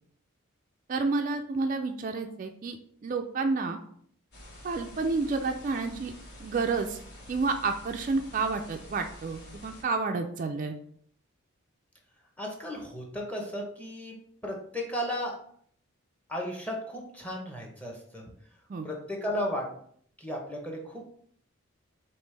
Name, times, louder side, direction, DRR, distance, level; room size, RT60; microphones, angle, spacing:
voice 1, 0.9-2.8 3.0-3.8 4.6-6.1 6.4-7.0 7.3-10.7 18.7-18.9, right 4 dB, 40° right, 4 dB, 0.3 m, -30 dB
sound 1, 4.3-9.8, left 1 dB, 50° left, 1.1 m, -48 dB
voice 2, 12.4-14.2 14.4-15.3 16.3-18.2 18.8-19.6 20.2-21.0, equal, 5° left, 0 dB, 0.8 m, -34 dB
5.2 x 2.9 x 3.2 m, 0.62 s
head